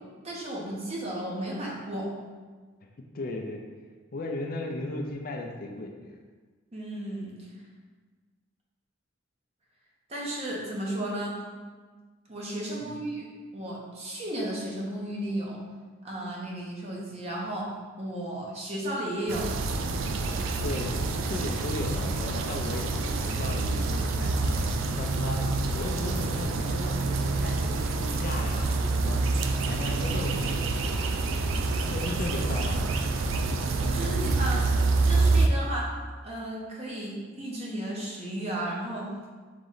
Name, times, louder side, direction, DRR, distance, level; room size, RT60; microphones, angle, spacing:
voice 1, 0.2-2.1 6.7-7.3 10.1-11.4 12.3-13.3 13.5-15.6 16.0-17.7 18.0-19.5 33.8-34.6 35.1-35.9 36.2-39.1, right 1 dB, 30° right, -3 dB, 0.8 m, -34 dB
voice 2, 3.1-3.6 4.1-6.1 12.8-13.0 20.6-24.4 24.9-25.5 25.7-29.2 29.7-31.0 31.5-32.9, left 2 dB, 45° left, 2 dB, 0.4 m, -36 dB
sound 1, 19.3-35.5, right 3 dB, 75° right, 0.4 m, -27 dB
3.9 x 3.1 x 3.9 m, 1.4 s
head